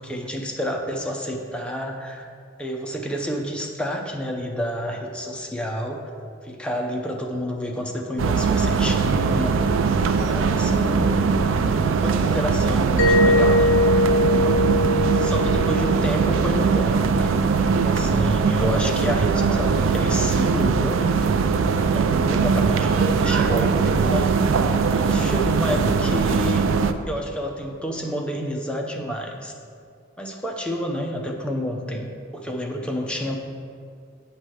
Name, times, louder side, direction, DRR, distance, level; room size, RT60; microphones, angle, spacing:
voice 1, 0.0-2.3 2.6-6.1 6.4-9.6 10.3-11.1 12.0-13.8 15.1-17.3 17.8-21.4 21.9-24.3 24.9-26.7 27.1-29.5 30.2-32.1 32.3-33.4, equal, 5° left, 1 dB, 0.6 m, -29 dB
sound 1, 8.2-26.9, right 5 dB, 80° right, 0.4 m, -21 dB
Mallet percussion, 13.0-17.6, left 1 dB, 65° left, 0.6 m, -22 dB
7.9 x 3.2 x 6.3 m, 2.2 s
head